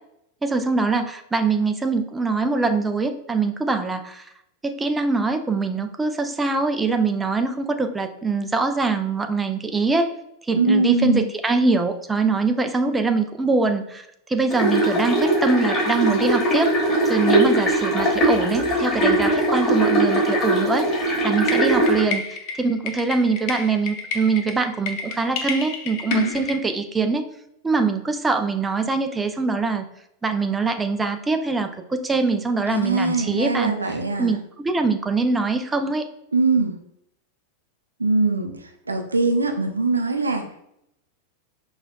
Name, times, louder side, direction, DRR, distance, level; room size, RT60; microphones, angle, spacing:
voice 1, 0.4-4.2 4.6-10.1 10.4-16.8 17.1-20.9 21.2-22.2 22.6-27.3 27.6-29.9 30.2-36.0, right 4 dB, 10° right, 6 dB, 0.3 m, -23 dB
voice 2, 10.6-11.2 32.7-34.3 36.3-36.8 38.0-38.6 38.9-40.5, right 3 dB, 80° right, 5 dB, 0.4 m, -21 dB
sound 1, 14.5-22.0, right 1 dB, 15° left, 1.4 m, -20 dB
sound 2, 21.4-26.6, left 5 dB, 45° left, 0.6 m, -30 dB
4.9 x 2.3 x 2.2 m, 0.76 s
figure-of-eight pair, 90°, 0 cm